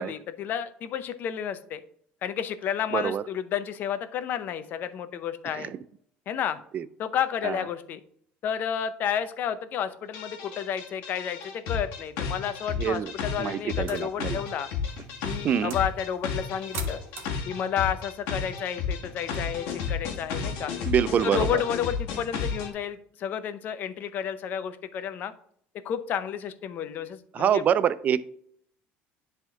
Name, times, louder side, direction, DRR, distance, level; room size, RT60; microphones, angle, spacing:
voice 1, 0.0-1.8 2.2-5.7 6.3-6.6 7.0-8.0 8.4-14.7 15.2-17.0 17.5-20.7 21.2-25.3 25.8-27.6, left 9 dB, 45° left, 12 dB, 0.6 m, -31 dB
voice 2, 2.9-3.2 5.5-5.8 6.7-6.9 7.4-7.6 12.8-13.1 13.4-14.4 15.4-15.8 20.9-21.6 27.3-28.2, right 8 dB, 35° right, 15 dB, 0.4 m, -25 dB
sound 1, 10.1-22.7, left 6 dB, 80° left, 1.4 m, -33 dB
sound 2, 13.8-19.3, right 6 dB, 65° right, 1.5 m, -46 dB
10.5 x 3.5 x 3.6 m, 0.64 s
cardioid pair, 140°, 4 cm